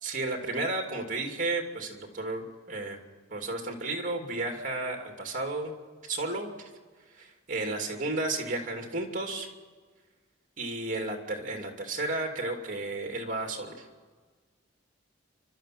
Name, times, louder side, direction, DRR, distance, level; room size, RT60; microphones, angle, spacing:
voice 1, 0.0-3.0 3.3-5.7 6.1-6.7 7.2-9.5 10.6-13.8, right 2 dB, 40° right, 3 dB, 2.7 m, -33 dB
29.5 x 12.5 x 7.7 m, 1.5 s
head